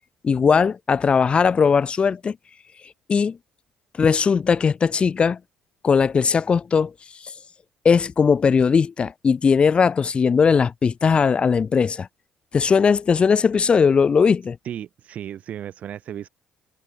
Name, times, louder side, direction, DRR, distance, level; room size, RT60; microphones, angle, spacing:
voice 1, 0.2-2.4 3.1-3.4 4.0-5.4 5.8-6.9 7.8-12.1 12.5-14.6, left 6 dB, 40° left, 1.1 m, -19 dB
voice 2, 14.6-16.3, right 10 dB, 60° right, 3.0 m, -34 dB
hypercardioid pair, 55°, 3 cm